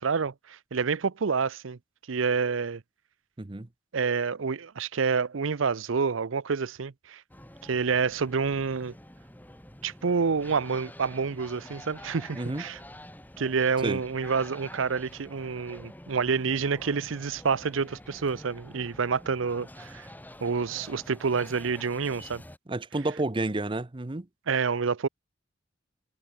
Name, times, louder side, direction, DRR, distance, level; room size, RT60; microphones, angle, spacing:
voice 1, 0.0-1.8 2.1-2.8 3.9-7.2 7.6-8.9 9.8-12.8 13.4-20.1 20.4-22.4 24.5-25.1, right 5 dB, 85° right, 0.6 m, -28 dB
voice 2, 3.4-3.7 12.4-12.7 13.8-14.0 22.7-24.3, right 2 dB, 25° right, 0.8 m, -30 dB
sound 1, 7.3-22.6, left 1 dB, 10° left, 5.9 m, -48 dB
head